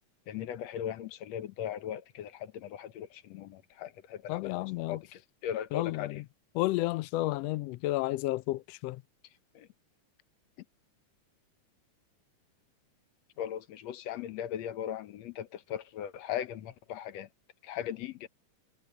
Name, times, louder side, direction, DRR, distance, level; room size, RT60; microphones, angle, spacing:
voice 1, 0.3-6.2 9.5-9.7 13.4-17.3 17.6-18.3, left 10 dB, 65° left, 2.1 m, -38 dB
voice 2, 4.3-5.0 5.7-6.2 6.5-9.0, left 18 dB, 85° left, 1.4 m, -31 dB
omnidirectional pair, 3.5 m